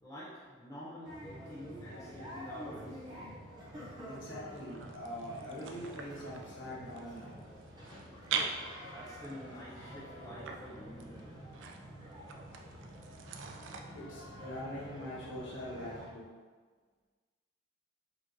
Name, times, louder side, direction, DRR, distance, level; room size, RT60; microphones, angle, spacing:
voice 1, 0.0-3.2 8.9-11.3, equal, 15° left, -9 dB, 0.6 m, -48 dB
sound 1, 1.0-16.1, equal, 20° right, 0.8 m, -48 dB
voice 2, 4.1-7.4 13.9-16.3, left 1 dB, 65° left, -5 dB, 0.9 m, -43 dB
sound 2, 4.5-13.8, right 6 dB, 60° right, 0.3 m, -43 dB
5.0 x 2.2 x 2.6 m, 1.5 s
head